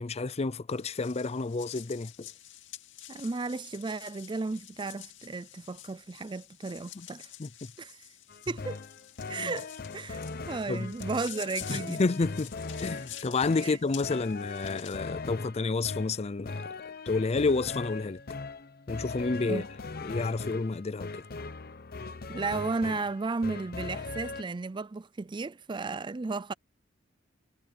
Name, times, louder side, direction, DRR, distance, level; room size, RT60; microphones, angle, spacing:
voice 1, 0.0-2.3 7.0-7.1 7.4-7.5 9.4-9.5 10.7-10.9 11.7-12.5 12.8-16.6 17.1-18.2 18.9-19.6 20.0-21.2, left 3 dB, 35° left, 0.5 m, -30 dB
sound 1, 0.7-15.0, left 12 dB, 75° left, 2.6 m, -48 dB
voice 2, 3.1-7.3 7.8-8.0 8.5-8.8 9.3-10.2 10.5-12.0 13.6-13.8 19.5-19.7 22.3-26.5, right 3 dB, 25° right, 0.4 m, -34 dB
sound 2, 8.3-24.4, left 4 dB, 55° left, 0.9 m, -40 dB
head